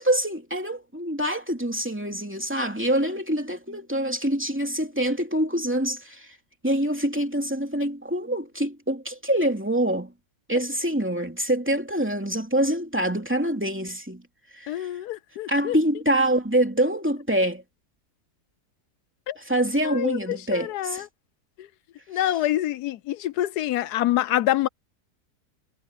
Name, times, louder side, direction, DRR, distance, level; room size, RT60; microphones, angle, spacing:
voice 1, 0.0-6.4 6.6-10.1 10.5-14.2 14.5-14.9 15.5-17.6 19.4-21.1, right 1 dB, 5° right, 2.7 m, -25 dB
voice 2, 14.7-15.8 19.3-19.4 19.8-21.1 22.1-24.7, left 13 dB, 80° left, 1.2 m, -26 dB
omnidirectional pair, 1.7 m